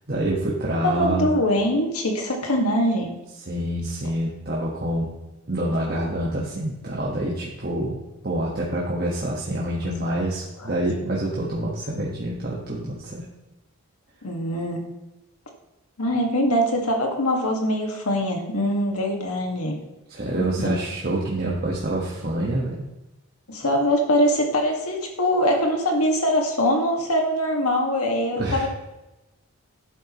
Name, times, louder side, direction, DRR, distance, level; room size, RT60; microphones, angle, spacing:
voice 1, 0.1-1.3 3.5-5.1 5.5-8.0 8.2-13.2 20.1-22.7 28.3-28.7, right 1 dB, 45° right, -5 dB, 1.5 m, -26 dB
voice 2, 0.8-3.1 10.6-10.7 14.2-14.9 16.0-19.8 20.4-20.8 23.5-28.7, equal, 90° left, 2 dB, 1.9 m, -23 dB
11.5 x 9.0 x 3.1 m, 1.0 s
head